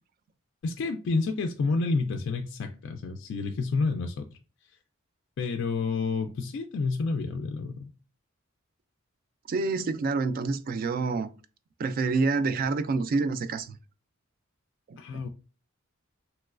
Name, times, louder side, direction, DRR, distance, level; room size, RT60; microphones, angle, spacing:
voice 1, 0.6-4.3 5.4-7.9 15.0-15.3, left 4 dB, 60° left, 0.3 m, -29 dB
voice 2, 9.5-11.3 11.8-13.8 14.9-15.0, right 4 dB, 45° right, 0.3 m, -27 dB
3.0 x 3.0 x 2.4 m
head